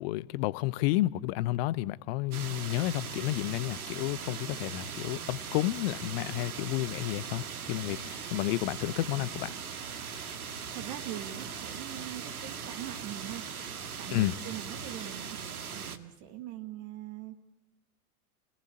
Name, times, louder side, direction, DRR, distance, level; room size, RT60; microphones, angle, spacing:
voice 1, 0.0-9.5 14.1-14.3, left 17 dB, 40° left, 0.8 m, -31 dB
sound 1, 2.3-16.0, right 6 dB, 70° right, 1.9 m, -40 dB
voice 2, 10.7-13.5 14.0-17.4, right 12 dB, 40° right, 1.9 m, -42 dB
29.0 x 18.0 x 8.2 m
figure-of-eight pair, 95°, 45 cm